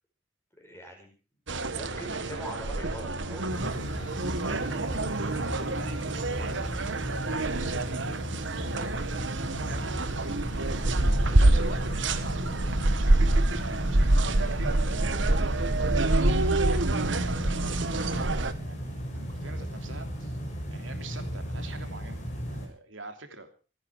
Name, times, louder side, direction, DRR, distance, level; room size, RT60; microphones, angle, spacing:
voice 1, 0.6-1.1 1.5-4.2, equal, 15° left, 2 dB, 5.5 m, -43 dB
sound 1, 1.5-18.5, right 2 dB, 75° right, 1.3 m, -27 dB
sound 2, 3.5-22.7, equal, 40° left, 7.0 m, -36 dB
voice 2, 5.4-9.1 9.7-10.3 10.5-10.8 11.2-15.8 16.3-20.4 20.7-23.5, right 3 dB, 90° right, 6 dB, 3.2 m, -44 dB
26.5 x 9.9 x 4.7 m, 0.36 s
head